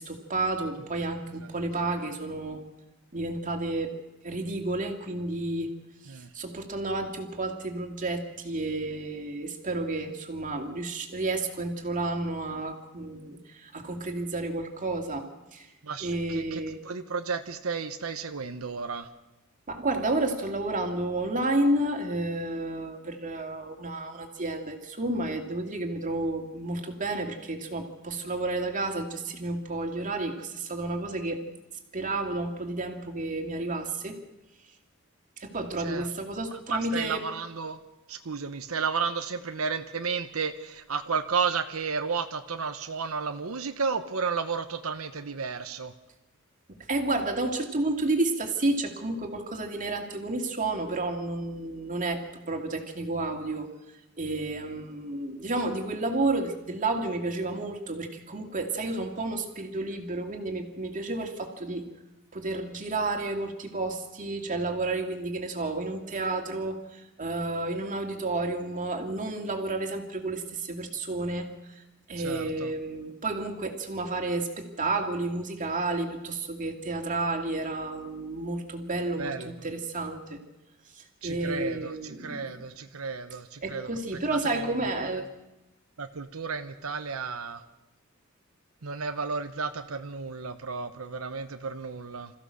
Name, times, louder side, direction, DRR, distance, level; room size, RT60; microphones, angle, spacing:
voice 1, 0.0-2.6 3.1-4.0 4.2-5.7 6.1-15.3 15.5-15.7 16.0-16.8 19.7-31.5 31.9-34.2 35.4-37.2 46.9-53.7 54.2-61.9 62.3-71.8 72.1-80.4 81.0-82.6 83.6-85.3, right 2 dB, 40° right, 3 dB, 2.5 m, -31 dB
voice 2, 15.8-19.1 35.8-36.1 36.7-37.8 38.1-45.9 72.2-72.7 79.2-79.5 81.2-83.9 84.3-84.7 86.0-87.6 88.8-92.3, right 5 dB, 85° right, 8 dB, 1.0 m, -33 dB
26.5 x 15.0 x 6.5 m, 0.99 s
head